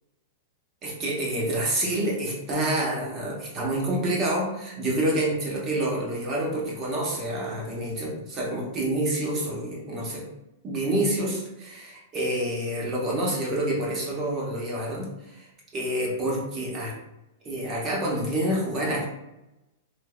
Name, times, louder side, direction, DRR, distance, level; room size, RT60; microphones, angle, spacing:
voice 1, 0.8-10.2 10.6-15.5 15.7-16.9 17.4-19.1, right 1 dB, 30° right, -3 dB, 1.0 m, -28 dB
3.3 x 2.7 x 2.3 m, 0.94 s
hypercardioid pair, 140°, 0 cm